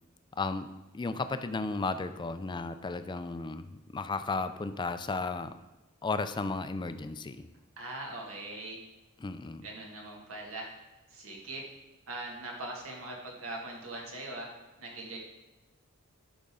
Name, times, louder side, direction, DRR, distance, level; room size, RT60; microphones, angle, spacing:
voice 1, 0.3-0.7 0.9-5.5 6.0-7.5 9.2-9.7, left 3 dB, 20° left, 11 dB, 0.4 m, -34 dB
voice 2, 7.8-8.8 9.6-10.7 11.1-11.7 12.1-14.5 14.8-15.2, right 2 dB, 85° right, -1 dB, 2.0 m, -41 dB
10.5 x 5.2 x 3.7 m, 1.1 s
head